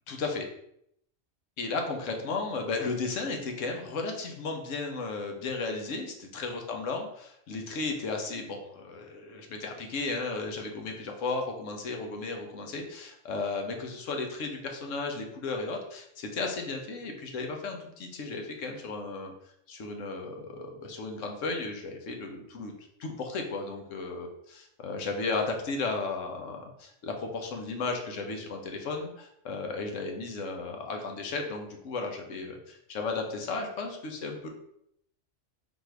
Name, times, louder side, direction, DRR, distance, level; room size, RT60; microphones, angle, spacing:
voice 1, 0.1-0.5 1.6-7.1 7.5-19.3 19.7-22.7 23.0-24.3 24.8-34.5, left 3 dB, 80° left, 3 dB, 1.2 m, -34 dB
4.2 x 2.7 x 4.5 m, 0.74 s
omnidirectional pair, 1.3 m